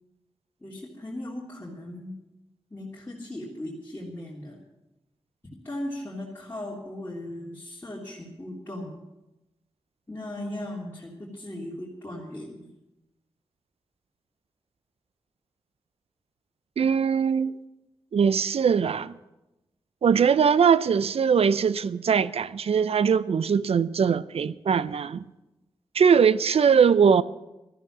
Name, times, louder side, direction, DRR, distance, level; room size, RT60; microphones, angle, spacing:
voice 1, 0.6-2.1 2.7-4.6 5.6-9.0 10.1-12.7, left 1 dB, 20° left, 3.2 m, -37 dB
voice 2, 16.8-17.5 18.1-19.1 20.0-25.2 25.9-27.2, right 6 dB, 70° right, 0.5 m, -21 dB
13.0 x 10.5 x 7.4 m
cardioid pair, 60°, 11 cm